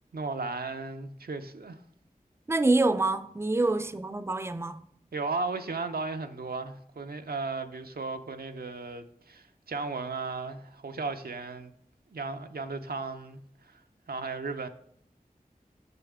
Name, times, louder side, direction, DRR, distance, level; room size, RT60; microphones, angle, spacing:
voice 1, 0.1-1.8 5.1-11.7 12.1-13.8 14.1-14.7, right 3 dB, 85° right, 0.5 m, -35 dB
voice 2, 2.5-4.8, right 2 dB, 15° right, 0.4 m, -26 dB
6.8 x 6.2 x 3.5 m
wide cardioid pair, 45°, 15 cm